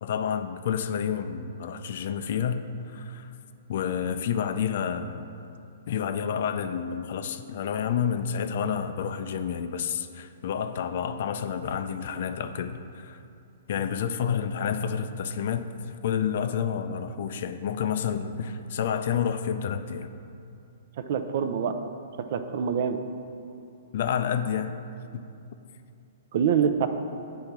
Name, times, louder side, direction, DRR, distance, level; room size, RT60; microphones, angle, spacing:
voice 1, 0.0-3.3 3.7-5.3 5.9-13.2 13.7-20.1 23.9-24.8 25.1-25.3, left 7 dB, 60° left, 10 dB, 0.4 m, -29 dB
voice 2, 21.0-21.8 22.2-23.0 26.3-26.9, right 7 dB, 55° right, 8 dB, 0.5 m, -25 dB
8.1 x 3.4 x 5.8 m, 2.6 s
hypercardioid pair, 130°, 0 cm